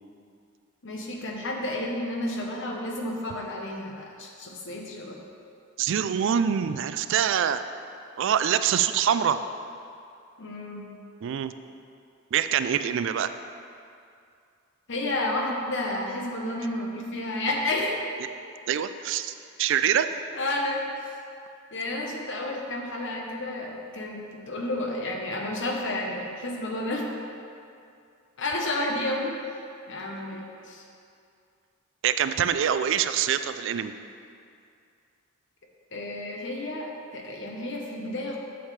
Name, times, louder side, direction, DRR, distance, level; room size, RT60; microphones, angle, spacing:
voice 1, 0.8-5.2 10.4-10.9 14.9-18.0 20.3-20.9 21.7-27.1 28.4-29.6 29.9-30.8 35.9-38.4, left 1 dB, 65° left, 0 dB, 1.1 m, -31 dB
voice 2, 5.8-7.6 8.2-9.4 11.2-11.5 12.3-13.3 18.7-19.3 19.6-20.1 32.0-33.9, right 9 dB, 65° right, 11 dB, 0.3 m, -24 dB
9.1 x 7.2 x 3.3 m, 2.5 s
head